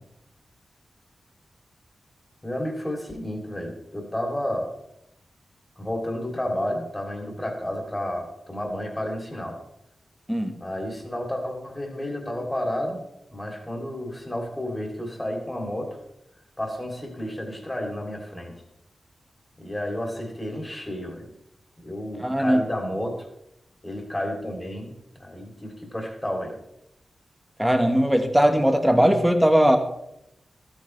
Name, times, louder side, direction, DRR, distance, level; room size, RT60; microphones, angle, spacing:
voice 1, 2.4-4.7 5.8-9.6 10.6-13.0 13.3-15.9 16.6-18.6 19.6-21.3 21.8-23.3 23.8-24.9 25.2-26.6, left 1 dB, 20° left, 1 dB, 3.0 m, -31 dB
voice 2, 22.2-22.6 27.6-29.8, equal, 5° right, 6 dB, 1.4 m, -19 dB
12.5 x 9.1 x 3.3 m, 0.83 s
cardioid pair, 55°, 0 cm